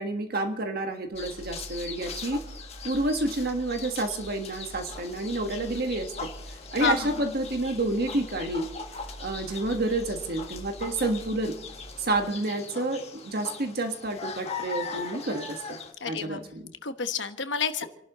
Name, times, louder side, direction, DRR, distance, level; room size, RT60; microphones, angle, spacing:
voice 1, 0.0-2.5 2.8-6.3 6.7-8.7 9.2-11.6 12.0-15.6 16.1-16.7, right 2 dB, 55° right, 5 dB, 1.5 m, -29 dB
sound 1, 1.1-12.3, right 1 dB, 25° right, 1.7 m, -46 dB
sound 2, 1.2-15.9, left 5 dB, 35° left, 1.6 m, -41 dB
voice 2, 16.0-16.4 16.8-17.8, left 6 dB, 70° left, 8 dB, 1.2 m, -29 dB
29.5 x 11.5 x 3.1 m, 0.83 s
head